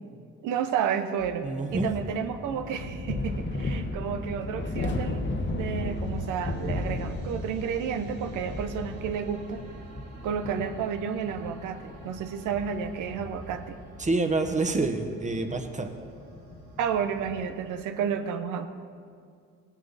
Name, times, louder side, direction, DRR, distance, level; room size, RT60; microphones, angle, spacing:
voice 1, 0.4-5.3 5.5-9.6 10.2-13.8 16.8-18.7, right 7 dB, 90° right, 8 dB, 0.9 m, -31 dB
sound 1, 1.2-17.9, right 3 dB, 60° right, 3.0 m, -51 dB
voice 2, 1.4-1.9 14.0-15.9, right 3 dB, 25° right, 6 dB, 1.2 m, -27 dB
sound 2, 1.7-17.5, left 2 dB, 35° left, 1.3 m, -35 dB
17.5 x 10.0 x 4.1 m, 2.3 s
cardioid pair, 90°, 30 cm